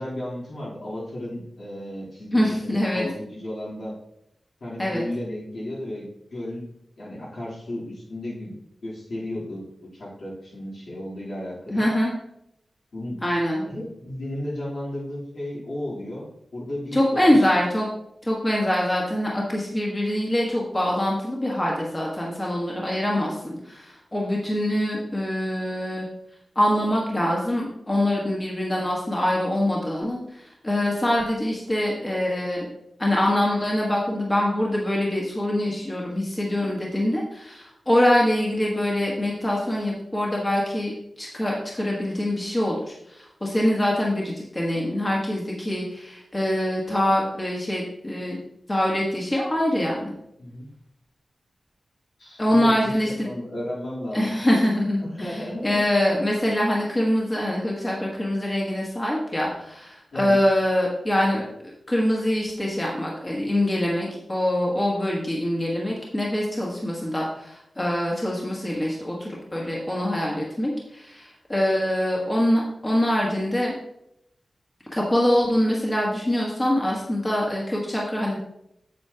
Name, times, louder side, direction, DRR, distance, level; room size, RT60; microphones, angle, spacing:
voice 1, 0.0-3.9 4.6-6.7 7.0-8.5 8.8-11.9 12.9-13.2 13.7-17.5 50.4-50.7 52.2-54.5 55.0-55.8 60.1-60.4, left 1 dB, 70° left, -7 dB, 3.4 m, -34 dB
voice 2, 2.3-3.1 4.8-5.0 11.7-12.1 13.2-13.7 16.9-17.9 18.2-26.1 26.5-32.7 33.0-48.4 48.7-50.1 52.4-53.3 54.1-73.7 74.9-78.4, left 1 dB, 20° left, -3 dB, 1.4 m, -24 dB
8.3 x 7.9 x 2.9 m, 0.78 s
wide cardioid pair, 130°, 0 cm